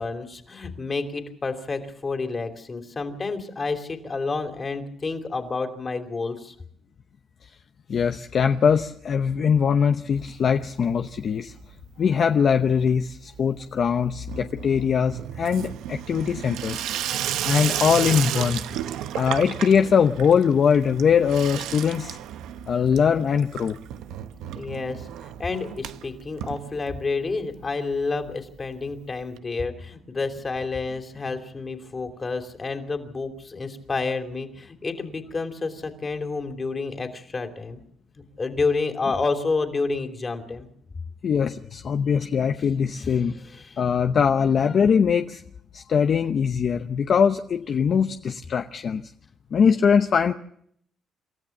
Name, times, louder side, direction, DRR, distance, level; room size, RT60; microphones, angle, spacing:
voice 1, 0.0-6.5 24.5-37.8 38.4-40.7 43.0-43.8, left 4 dB, 30° left, 5 dB, 3.0 m, -29 dB
voice 2, 7.9-11.5 12.0-16.9 17.4-18.7 19.1-22.2 22.7-23.8 41.2-43.3 43.8-45.4 45.7-49.0 49.5-50.3, left 7 dB, 55° left, 7 dB, 0.8 m, -21 dB
Water tap faucet / Sink (filling or washing), 10.1-10.9 11.2-11.7 12.0-27.3 27.6-27.7 27.9-28.0 28.2-28.3 29.4-29.5, right 11 dB, 85° right, 0.8 m, -33 dB
27.5 x 13.5 x 7.2 m, 0.68 s
cardioid pair, 90°, 0 cm